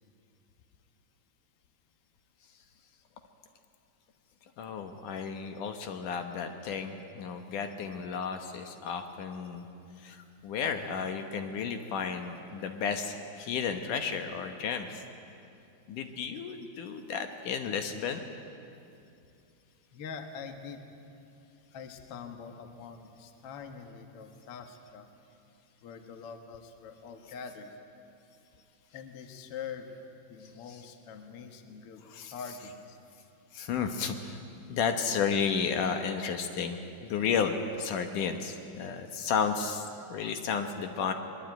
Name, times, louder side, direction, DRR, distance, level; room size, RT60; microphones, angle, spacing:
voice 1, 4.6-9.7 10.0-15.0 15.9-18.3 32.1-32.3 33.5-34.4 34.7-41.1, left 6 dB, 70° left, 6 dB, 2.0 m, -33 dB
voice 2, 19.9-20.8 21.7-25.1 25.8-27.7 28.9-29.9 30.3-33.0, left 6 dB, 85° left, 6 dB, 1.2 m, -44 dB
22.5 x 22.0 x 9.0 m, 2.6 s
omnidirectional pair, 5.0 m